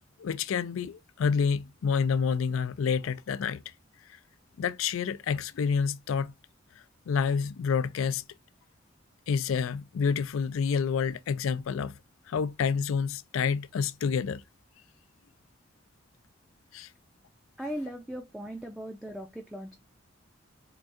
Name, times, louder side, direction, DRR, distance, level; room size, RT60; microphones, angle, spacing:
voice 1, 0.2-3.6 4.6-6.3 7.1-8.2 9.3-11.9 12.3-14.4 16.7-16.9, left 6 dB, 85° left, 0.4 m, -28 dB
voice 2, 17.6-19.8, equal, ahead, 0.5 m, -38 dB
4.5 x 2.3 x 2.6 m
head